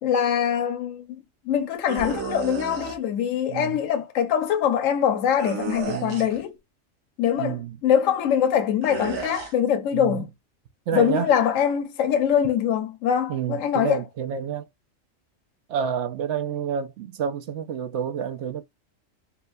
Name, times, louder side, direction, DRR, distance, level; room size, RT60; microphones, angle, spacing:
voice 1, 0.0-6.5 7.2-10.3 10.9-14.0, left 9 dB, 75° left, 1.1 m, -23 dB
sound 1, 1.9-3.0 5.4-6.4 8.8-9.5, right 5 dB, 80° right, 1.3 m, -33 dB
voice 2, 5.9-6.3 7.3-7.8 9.9-10.2 10.9-11.3 13.3-14.7 15.7-18.6, right 8 dB, 65° right, 0.9 m, -29 dB
3.8 x 2.2 x 2.6 m
omnidirectional pair, 1.4 m